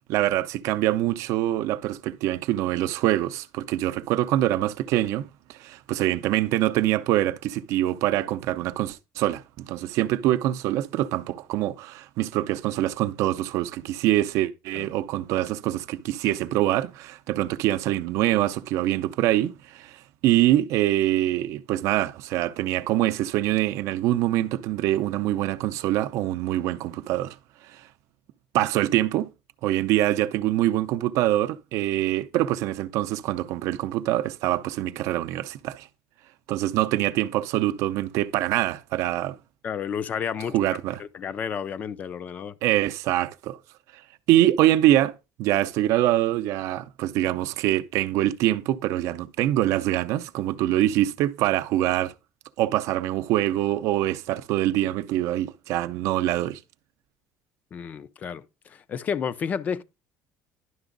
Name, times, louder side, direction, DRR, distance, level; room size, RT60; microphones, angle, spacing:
voice 1, 0.1-27.4 28.5-29.3 29.6-35.9 36.5-39.4 40.5-41.0 42.6-43.6 44.3-45.1 45.4-52.1 52.6-56.6, right 14 dB, 60° right, 0.5 m, -24 dB
voice 2, 39.6-40.6 41.0-42.5 57.7-59.8, left 7 dB, 25° left, 0.4 m, -31 dB
11.0 x 6.0 x 3.8 m
cardioid pair, 180°, 6 cm